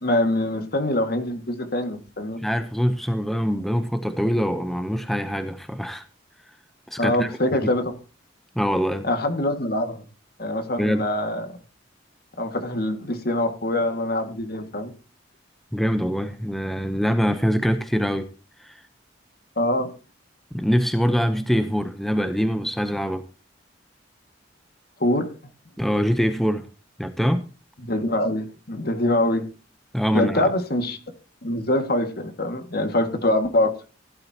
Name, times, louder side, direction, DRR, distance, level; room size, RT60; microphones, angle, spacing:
voice 1, 0.0-2.4 7.0-7.9 9.0-10.1 10.4-11.5 12.4-14.9 19.6-19.9 25.0-25.3 27.8-29.5 30.1-31.0 31.4-33.7, left 1 dB, 55° left, 2.0 m, -24 dB
voice 2, 2.4-6.0 6.9-7.6 8.5-9.1 10.8-11.1 15.7-18.3 18.6-18.8 20.5-23.2 25.8-26.7 27.0-27.4 29.9-30.5, equal, ahead, 0.8 m, -24 dB
16.0 x 11.5 x 2.9 m
head